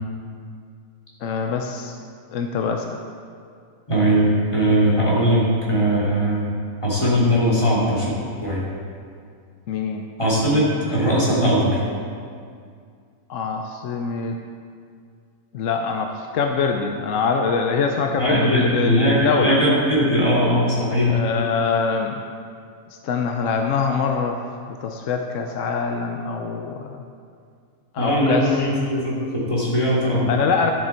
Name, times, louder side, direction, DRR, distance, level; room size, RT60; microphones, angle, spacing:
voice 1, 1.2-2.0 2.3-3.0 9.7-10.0 13.3-14.4 15.5-19.6 21.1-22.2 23.0-24.4 24.8-27.0 27.9-28.5 30.3-30.7, left 5 dB, 65° left, 4 dB, 0.9 m, -24 dB
voice 2, 3.9-5.4 5.7-6.5 6.8-8.1 8.4-8.6 10.2-11.8 18.2-21.2 28.0-30.3, equal, 20° left, -7 dB, 2.9 m, -19 dB
12.0 x 7.6 x 4.4 m, 2.2 s
omnidirectional pair, 1.6 m